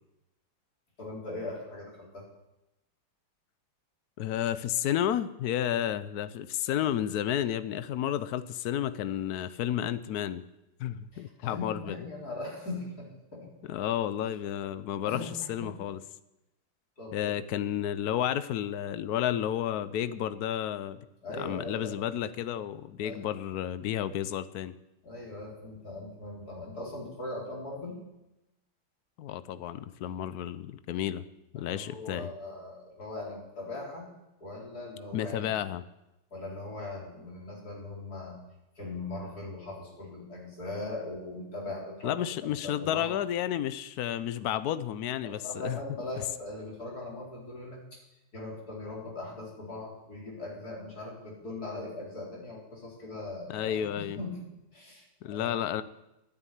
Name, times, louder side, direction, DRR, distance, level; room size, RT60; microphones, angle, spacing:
voice 1, 1.0-2.3 11.1-13.5 15.1-15.3 15.6-15.8 17.0-17.4 21.2-21.9 23.0-23.3 25.0-28.0 31.5-34.1 34.4-35.5 36.3-38.4 38.8-43.1 45.2-48.0 48.3-54.4 54.7-55.7, left 2 dB, 45° left, -3 dB, 4.8 m, -40 dB
voice 2, 4.2-10.4 10.8-12.0 13.7-16.0 17.1-21.0 21.4-24.7 29.2-31.2 31.5-32.3 35.1-35.8 42.0-45.8 53.5-54.2 55.2-55.8, left 11 dB, 80° left, 14 dB, 0.8 m, -31 dB
12.0 x 9.8 x 9.2 m, 0.93 s
omnidirectional pair, 2.4 m